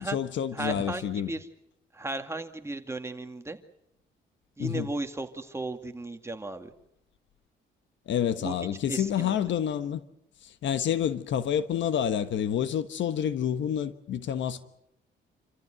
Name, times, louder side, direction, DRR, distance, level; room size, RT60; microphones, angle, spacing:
voice 1, 0.0-1.3 4.6-4.9 8.1-10.0 10.4-14.6, left 9 dB, 70° left, 1.3 m, -28 dB
voice 2, 0.5-1.5 1.9-3.6 4.6-6.7 8.4-8.6 8.9-9.4, right 2 dB, 15° right, 2.2 m, -35 dB
27.5 x 15.0 x 9.2 m
cardioid pair, 90°, 20 cm